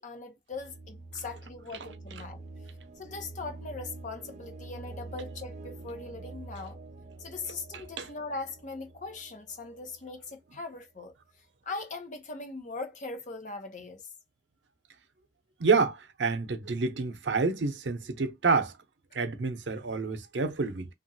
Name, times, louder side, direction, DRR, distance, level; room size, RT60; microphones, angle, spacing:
voice 1, 0.0-2.4 3.0-6.8 7.2-11.1 11.6-14.0, left 3 dB, 45° left, 0.7 m, -40 dB
sound 1, 0.5-10.3, right 2 dB, 40° right, 0.5 m, -46 dB
voice 2, 15.6-18.7 19.1-20.9, right 4 dB, 85° right, 0.6 m, -28 dB
2.9 x 2.5 x 2.6 m
head